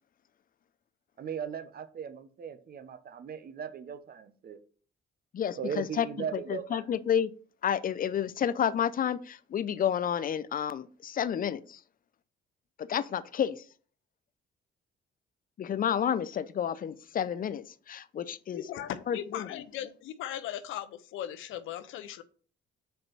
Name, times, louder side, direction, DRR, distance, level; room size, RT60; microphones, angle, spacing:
voice 1, 1.2-4.6 5.6-6.9, right 7 dB, 50° right, 0.9 m, -38 dB
voice 2, 5.3-6.1 6.3-7.3 7.6-11.8 12.8-13.6 15.6-18.6 19.1-19.5, left 9 dB, 45° left, 0.6 m, -30 dB
voice 3, 18.5-22.2, left 11 dB, 85° left, 0.6 m, -38 dB
5.1 x 4.6 x 6.1 m
cardioid pair, 90°, 20 cm